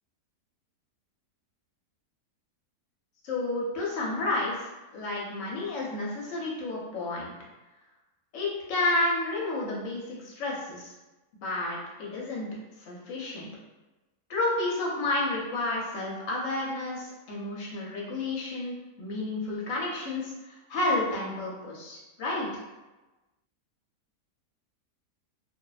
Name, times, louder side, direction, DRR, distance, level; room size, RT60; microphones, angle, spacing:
voice 1, 3.2-4.6 4.9-7.3 8.3-10.9 11.4-12.5 12.8-13.5 14.3-22.6, left 2 dB, 60° left, -4 dB, 0.9 m, -31 dB
2.6 x 2.0 x 2.3 m, 1.1 s
omnidirectional pair, 1.7 m